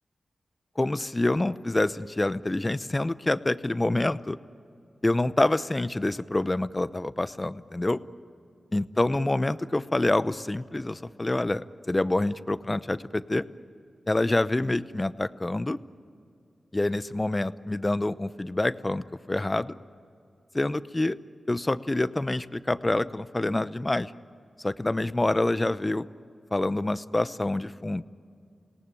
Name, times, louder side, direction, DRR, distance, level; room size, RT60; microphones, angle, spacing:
voice 1, 0.8-4.4 5.0-8.0 8.7-13.4 14.1-15.8 16.7-19.7 20.5-21.2 21.5-24.1 24.6-26.0 26.5-28.0, left 2 dB, 25° left, 14 dB, 0.8 m, -27 dB
27.5 x 18.5 x 9.9 m, 2.4 s
cardioid pair, 45°, 0 cm